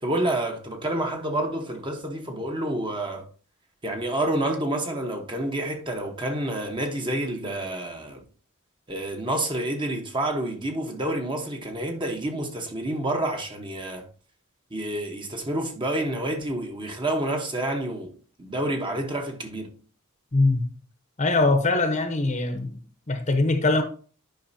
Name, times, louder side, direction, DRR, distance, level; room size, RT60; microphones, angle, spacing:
voice 1, 0.0-3.3 3.8-8.2 8.9-14.1 14.7-18.1 18.4-19.7, right 1 dB, 20° right, 1.1 m, -28 dB
voice 2, 20.3-20.7 21.2-22.8 23.1-23.8, left 2 dB, 30° left, 0.9 m, -22 dB
10.5 x 5.5 x 2.7 m
head